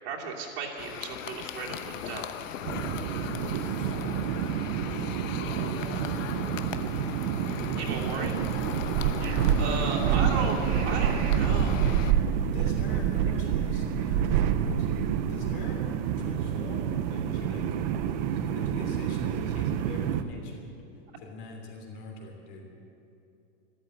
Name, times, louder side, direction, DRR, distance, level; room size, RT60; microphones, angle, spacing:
voice 1, 0.0-2.2 7.8-8.3 9.6-11.9, right 5 dB, 50° right, -2 dB, 2.8 m, -34 dB
sound 1, 0.8-12.1, left 9 dB, 70° left, 1.0 m, -39 dB
sound 2, 2.6-20.2, right 8 dB, 35° right, 0.6 m, -28 dB
voice 2, 3.2-4.8 5.4-8.0 9.0-9.2 12.4-15.8 16.2-17.6 18.3-20.7 21.2-22.7, left 2 dB, 40° left, 1 dB, 3.1 m, -43 dB
13.0 x 12.5 x 7.8 m, 2.8 s
supercardioid pair, 160°, 40 cm